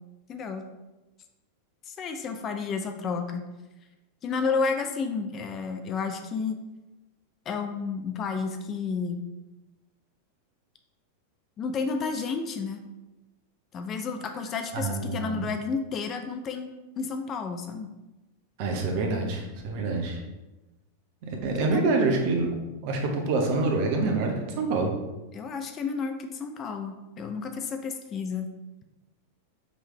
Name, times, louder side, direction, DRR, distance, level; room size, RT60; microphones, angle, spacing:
voice 1, 0.3-0.6 1.9-3.5 4.2-6.6 7.5-9.2 11.6-12.8 13.7-17.9 21.7-21.9 25.3-28.5, left 5 dB, 30° left, 6 dB, 0.4 m, -31 dB
voice 2, 14.7-15.4 18.6-20.2 21.2-22.6 22.8-24.9, right 3 dB, 45° right, 2 dB, 0.8 m, -26 dB
5.3 x 3.2 x 3.1 m, 1.1 s
figure-of-eight pair, 90°, 0 cm